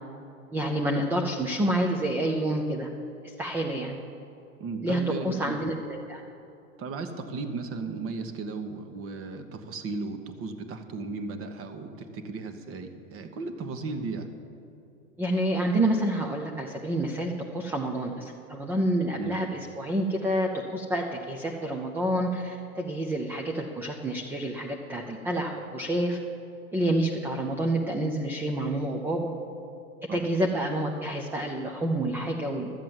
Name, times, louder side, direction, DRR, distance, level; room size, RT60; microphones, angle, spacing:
voice 1, 0.5-2.9 3.4-4.0 4.8-6.2 15.2-26.2 26.7-29.3 30.1-32.7, right 1 dB, 5° right, 2 dB, 0.4 m, -28 dB
voice 2, 4.6-5.4 6.8-14.3 19.1-19.4 30.1-30.3, right 4 dB, 30° right, 7 dB, 1.2 m, -35 dB
13.0 x 7.5 x 7.4 m, 2.8 s
hypercardioid pair, 105°, 44 cm